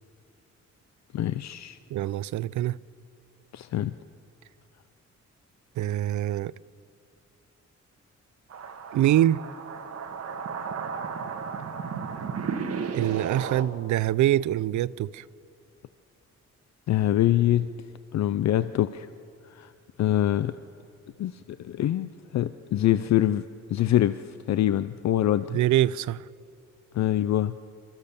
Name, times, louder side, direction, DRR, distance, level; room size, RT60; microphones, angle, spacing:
voice 1, 1.1-1.8 3.5-3.9 16.9-17.7 18.1-19.1 19.5-19.7 20.0-20.6 21.2-24.2 24.5-25.4 26.9-27.6, left 12 dB, 65° left, 0.5 m, -24 dB
voice 2, 1.9-2.8 5.8-6.5 8.9-9.4 12.9-15.2 25.5-26.3, right 13 dB, 85° right, 0.5 m, -24 dB
sound 1, 8.5-13.6, right 6 dB, 55° right, 1.5 m, -34 dB
27.0 x 14.0 x 6.9 m
wide cardioid pair, 155°, 29 cm